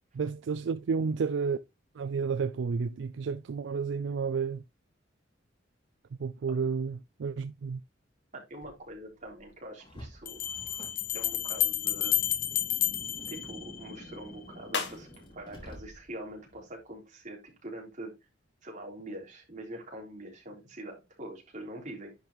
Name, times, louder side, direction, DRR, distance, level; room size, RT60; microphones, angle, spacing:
voice 1, 0.1-1.6 2.0-4.6 6.2-7.8, right 5 dB, 65° right, 0.4 m, -31 dB
voice 2, 8.3-10.4 11.1-12.2 13.3-15.1 15.3-18.1 18.6-22.1, right 1 dB, 40° right, 3.6 m, -44 dB
Bell, 8.6-8.7 10.3-14.2, left 12 dB, 50° left, 0.7 m, -31 dB
Car, 9.8-16.3, equal, 25° left, 2.7 m, -49 dB
sound 1, 14.6-17.1, left 5 dB, 65° left, 1.9 m, -44 dB
10.5 x 5.3 x 3.0 m
head